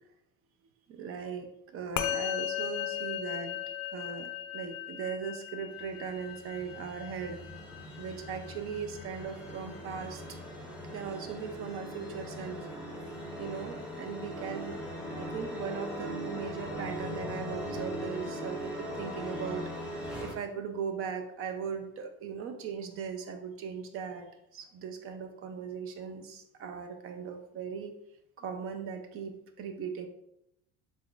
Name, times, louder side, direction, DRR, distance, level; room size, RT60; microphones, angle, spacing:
voice 1, 0.9-3.6 3.9-7.4 8.0-10.2 10.9-12.7 13.4-14.8 15.1-27.9 28.4-30.1, right 6 dB, 45° right, 6 dB, 0.6 m, -39 dB
Musical instrument, 2.0-11.5, left 11 dB, 65° left, 0.5 m, -38 dB
sound 1, 5.7-20.3, equal, 5° right, 0.9 m, -40 dB
4.1 x 3.4 x 2.4 m, 0.81 s
cardioid pair, 125°, 32 cm